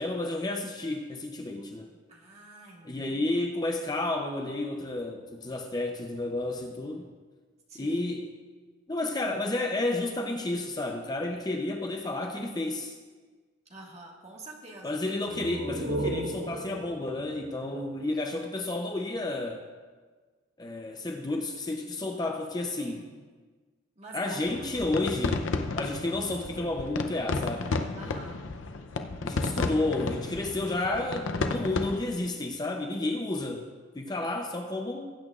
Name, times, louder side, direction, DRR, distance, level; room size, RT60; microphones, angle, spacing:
voice 1, 0.0-1.9 2.8-7.1 7.8-8.3 8.9-12.9 14.8-19.7 20.6-23.1 24.1-25.5 25.7-27.8 28.0-28.2 29.2-33.7 33.9-35.1, left 2 dB, 20° left, 3 dB, 0.6 m, -31 dB
voice 2, 2.1-3.3 7.7-8.1 13.7-15.0 22.8-23.2 24.0-24.6 28.0-28.4, right 2 dB, 35° right, -1 dB, 1.6 m, -47 dB
sound 1, 15.2-18.7, right 1 dB, 90° right, 0.9 m, -36 dB
sound 2, 24.5-32.0, left 3 dB, 90° left, 0.6 m, -32 dB
18.5 x 8.6 x 2.4 m, 1.4 s
head